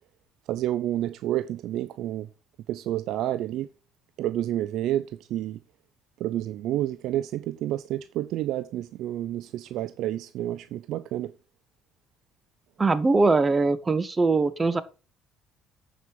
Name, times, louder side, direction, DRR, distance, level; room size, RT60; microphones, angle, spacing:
voice 1, 0.5-2.3 2.7-3.7 4.2-5.0 5.3-5.6 6.2-11.3, right 13 dB, 65° right, 0.4 m, -29 dB
voice 2, 12.8-14.8, right 3 dB, 25° right, 0.9 m, -22 dB
8.4 x 5.4 x 4.5 m
hypercardioid pair, 55°, 0 cm